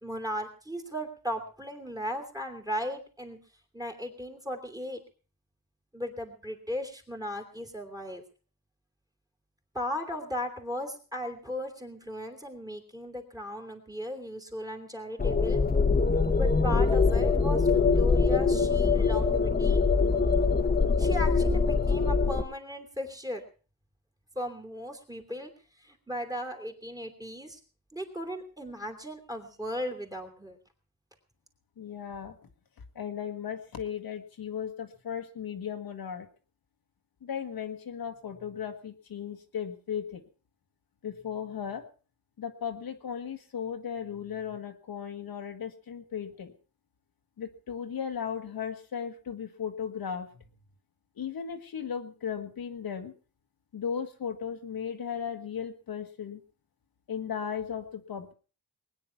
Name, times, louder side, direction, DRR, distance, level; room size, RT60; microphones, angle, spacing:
voice 1, 0.0-3.4 3.7-5.0 5.9-8.2 9.7-15.6 16.4-19.8 21.0-23.4 24.3-25.5 25.8-27.6 27.9-30.6, equal, 10° right, 6 dB, 3.1 m, -36 dB
sound 1, 15.2-22.4, left 4 dB, 25° left, 1.4 m, -23 dB
voice 2, 31.8-32.4 33.0-36.3 37.2-40.2 41.0-41.8 42.4-46.5 47.4-50.4 51.2-53.1 53.7-56.4 57.1-58.3, left 7 dB, 70° left, 5 dB, 1.7 m, -36 dB
20.5 x 9.8 x 5.8 m, 0.38 s
wide cardioid pair, 130°, 37 cm